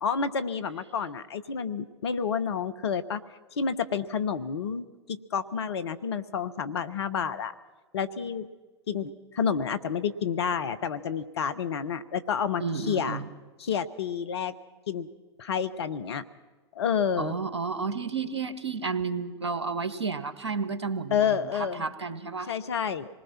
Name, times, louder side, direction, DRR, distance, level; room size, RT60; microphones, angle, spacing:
voice 1, 0.0-3.2 3.6-7.5 7.9-8.5 8.9-13.2 13.6-14.5 14.9-15.1 15.4-16.2 16.7-17.4 21.1-21.8 22.5-23.1, left 7 dB, 70° left, 12 dB, 1.3 m, -29 dB
voice 2, 12.6-13.3 17.2-22.5, right 4 dB, 80° right, 11 dB, 1.6 m, -32 dB
26.5 x 20.0 x 6.0 m, 1.3 s
figure-of-eight pair, 95°, 14 cm